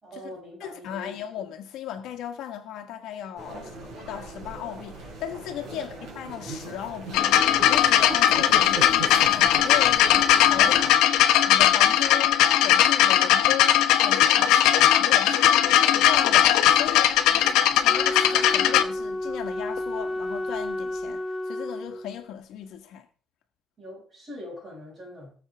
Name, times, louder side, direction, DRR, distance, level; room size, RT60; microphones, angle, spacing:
voice 1, 0.0-1.1 3.5-3.9 5.7-6.0 10.5-11.0 14.5-14.9 17.2-17.7 23.8-25.3, equal, 20° right, 6.1 m, -43 dB
voice 2, 0.6-3.7 4.0-7.3 7.7-10.8 11.4-12.3 12.6-23.1, left 10 dB, 60° left, 1.5 m, -36 dB
sound 1, 3.4-10.9, right 3 dB, 55° right, 4.7 m, -38 dB
sound 2, 7.1-18.8 19.8-19.9, left 11 dB, 80° left, 1.0 m, -19 dB
Wind instrument woodwind instrument, 17.8-22.3, left 1 dB, 5° left, 0.8 m, -31 dB
19.0 x 7.2 x 3.6 m
cardioid pair, 175°, 0 cm